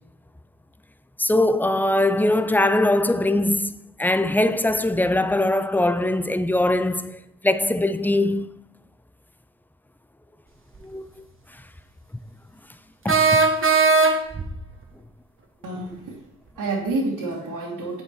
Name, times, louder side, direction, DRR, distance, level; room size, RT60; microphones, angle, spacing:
voice 1, 1.2-8.5 10.8-11.2 13.0-13.4, left 1 dB, 5° left, 0.5 m, -22 dB
sound 1, 10.8-10.9 13.1-14.5, right 4 dB, 30° right, 1.6 m, -18 dB
voice 2, 15.6-16.2 16.6-18.0, right 2 dB, 60° right, 2.5 m, -28 dB
7.8 x 6.5 x 4.7 m
hypercardioid pair, 50°, 39 cm